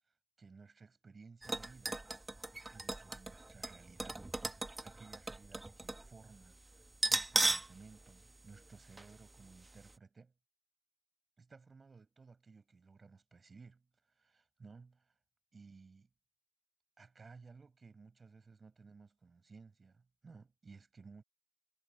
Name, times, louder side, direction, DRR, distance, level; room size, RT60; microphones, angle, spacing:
voice 1, 0.4-2.0 2.7-10.3 11.4-15.1 15.5-16.1 17.0-21.2, right 4 dB, 65° right, 7.0 m, -58 dB
sound 1, 1.4-6.1 6.3-6.4 6.9-7.8 8.1-8.2 9.0-9.1 9.5-9.6, right 2 dB, 30° right, 0.8 m, -37 dB
wide cardioid pair, 75°, 0 cm